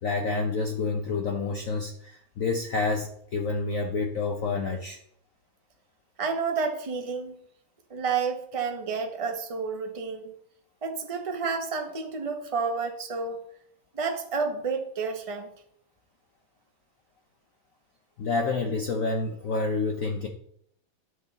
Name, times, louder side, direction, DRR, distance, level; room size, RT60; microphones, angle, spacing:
voice 1, 0.0-5.0 18.2-20.3, left 3 dB, 60° left, 3 dB, 0.9 m, -28 dB
voice 2, 6.2-7.3 7.9-10.3 10.8-13.4 13.9-15.5, right 5 dB, 30° right, 4 dB, 0.6 m, -30 dB
11.0 x 6.3 x 4.0 m, 0.67 s
omnidirectional pair, 2.2 m